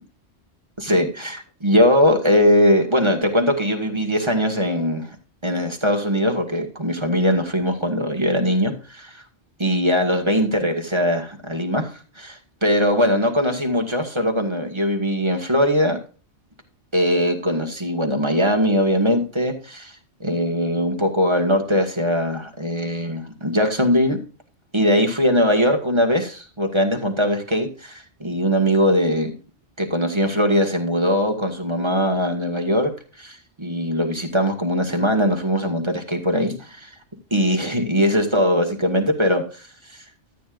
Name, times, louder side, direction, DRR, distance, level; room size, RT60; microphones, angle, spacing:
voice 1, 0.8-5.1 5.4-9.2 9.6-11.9 12.2-16.0 16.9-19.9 20.2-24.2 24.7-29.3 29.8-32.9 33.2-36.9 37.3-39.4, equal, 25° right, 3 dB, 1.8 m, -20 dB
14.0 x 8.7 x 2.5 m, 0.36 s
omnidirectional pair, 1.1 m